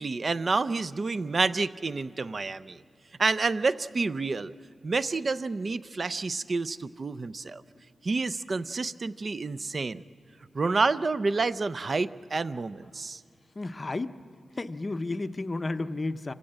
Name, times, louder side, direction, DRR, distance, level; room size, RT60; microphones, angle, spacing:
voice 1, 0.0-2.8 3.2-4.5 4.8-7.6 8.0-10.0 10.5-13.2, right 3 dB, 40° right, 16 dB, 0.5 m, -29 dB
voice 2, 13.6-14.2 14.6-16.3, left 2 dB, 25° left, 11 dB, 0.6 m, -32 dB
27.0 x 16.5 x 8.7 m, 2.4 s
wide cardioid pair, 150°, 0 cm